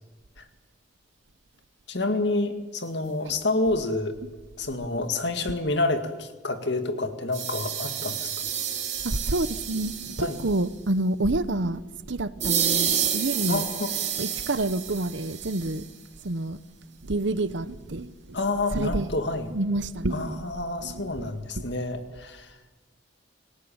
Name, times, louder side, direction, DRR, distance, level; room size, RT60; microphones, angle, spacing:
voice 1, 1.9-4.2 4.6-8.3 10.2-10.4 13.5-13.9 18.3-19.5 20.1-22.5, left 2 dB, 60° left, 2.1 m, -28 dB
sound 1, 7.3-10.7 12.4-15.9, right 8 dB, 35° right, 3.4 m, -30 dB
voice 2, 9.0-13.7 14.2-15.8 16.2-16.6 17.0-18.4 18.7-19.1 19.5-20.5 20.8-21.7, right 2 dB, 70° right, 1.0 m, -28 dB
27.0 x 18.0 x 8.8 m
head